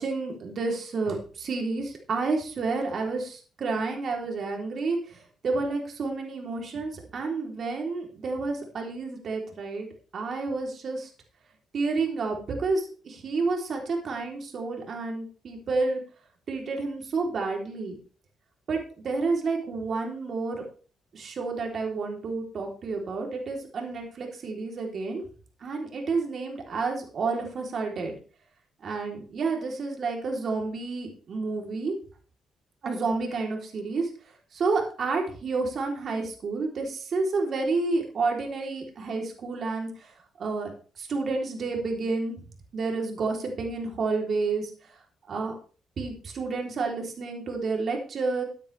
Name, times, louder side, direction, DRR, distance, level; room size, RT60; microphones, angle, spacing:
voice 1, 0.0-9.9 10.1-11.1 11.7-16.0 16.5-17.9 18.7-20.6 21.1-25.2 25.6-28.1 28.8-31.9 32.8-34.1 34.5-40.1 40.4-40.7 41.0-42.4 42.7-44.7 45.3-45.5 46.0-48.4, right 3 dB, 55° right, 1 dB, 3.6 m, -30 dB
14.0 x 9.0 x 3.5 m, 0.40 s
cardioid pair, 90°, 0 cm